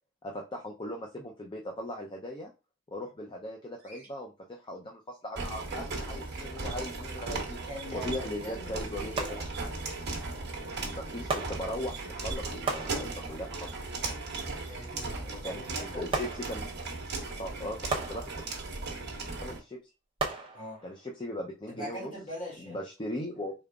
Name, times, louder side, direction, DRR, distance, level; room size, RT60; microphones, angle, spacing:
voice 1, 0.2-2.5 2.9-7.6 7.9-9.4 10.9-13.8 15.4-16.6 17.4-18.3 19.4-19.8 20.8-22.1 22.6-23.5, left 1 dB, 25° left, 0.5 m, -38 dB
Bird vocalization bird call bird song, 3.8-4.1 6.2-6.5 8.9-9.2, right 1 dB, 10° right, 1.3 m, -54 dB
sound 1, 5.4-19.6, right 3 dB, 55° right, 1.0 m, -37 dB
voice 2, 7.7-9.5 14.7-16.3 20.5-20.9 21.7-22.8, equal, 40° left, 2.1 m, -42 dB
sound 2, 7.7-7.8 9.2-10.0 11.3-12.2 12.7-13.6 16.1-17.0 17.9-18.9 20.2-21.1 21.7-21.8, right 3 dB, 25° right, 0.7 m, -36 dB
3.7 x 3.6 x 2.3 m
head